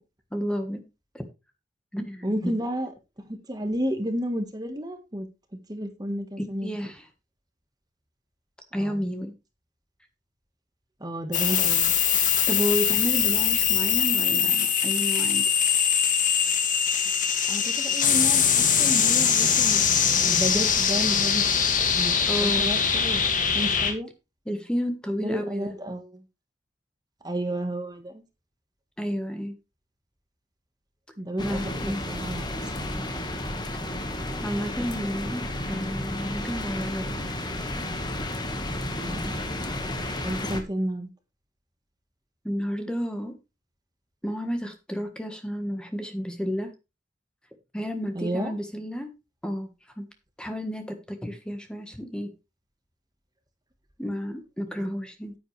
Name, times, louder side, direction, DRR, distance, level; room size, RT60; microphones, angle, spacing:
voice 1, 0.3-0.8 1.1-1.2 1.9-2.6 6.6-7.0 8.7-9.3 12.5-15.5 22.3-22.7 24.5-25.7 29.0-29.5 31.4-32.0 34.4-37.2 42.4-43.3 44.2-46.7 47.7-49.1 49.4-50.1 50.4-52.3 54.0-55.3, equal, 5° left, 6 dB, 1.4 m, -31 dB
voice 2, 2.2-2.9 3.2-6.7 8.8-9.0 11.0-12.0 17.5-19.9 20.2-23.2 23.5-24.1 25.2-26.2 27.2-28.2 31.2-32.9 39.0-39.3 40.2-41.1 48.1-48.5 54.8-54.9, equal, 20° right, 7 dB, 1.4 m, -32 dB
sound 1, 11.3-23.9, left 7 dB, 45° left, 2.1 m, -22 dB
sound 2, 31.4-40.6, left 1 dB, 25° left, 1.5 m, -32 dB
9.8 x 9.8 x 3.3 m, 0.26 s
head